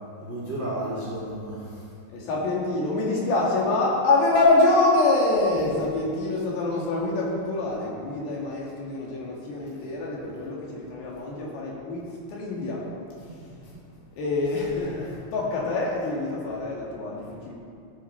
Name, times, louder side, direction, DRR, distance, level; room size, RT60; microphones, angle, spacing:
voice 1, 0.2-1.8 13.3-13.7, right 1 dB, 45° right, -7 dB, 1.5 m, -33 dB
voice 2, 2.1-12.0 12.3-12.9 14.2-17.5, left 2 dB, 65° left, -4 dB, 3.7 m, -25 dB
16.0 x 9.0 x 4.3 m, 2.5 s
omnidirectional pair, 5.6 m